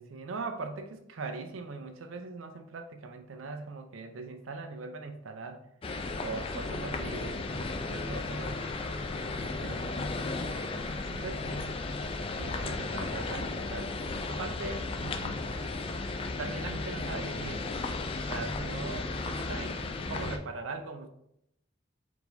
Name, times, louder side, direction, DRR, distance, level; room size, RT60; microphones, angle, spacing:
voice 1, 0.0-5.6 6.2-8.6 9.6-10.7 11.1-11.7 12.4-14.0 14.3-15.4 16.4-17.6 18.2-21.1, right 3 dB, 80° right, 7 dB, 0.5 m, -41 dB
sound 1, 5.8-20.4, left 3 dB, 30° left, 0.3 m, -35 dB
4.5 x 4.0 x 2.6 m, 0.77 s
head